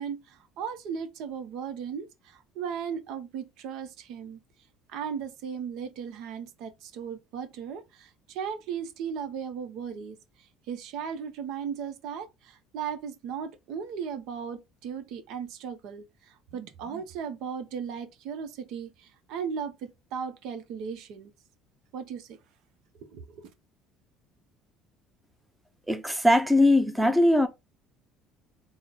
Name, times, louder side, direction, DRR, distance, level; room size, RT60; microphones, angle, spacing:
voice 1, 0.0-4.4 4.9-21.3 21.9-22.4 23.0-23.5, right 7 dB, 70° right, 0.7 m, -37 dB
voice 2, 25.9-27.5, left 1 dB, 5° right, 0.6 m, -21 dB
3.8 x 2.0 x 4.0 m
supercardioid pair, 105°, 0 cm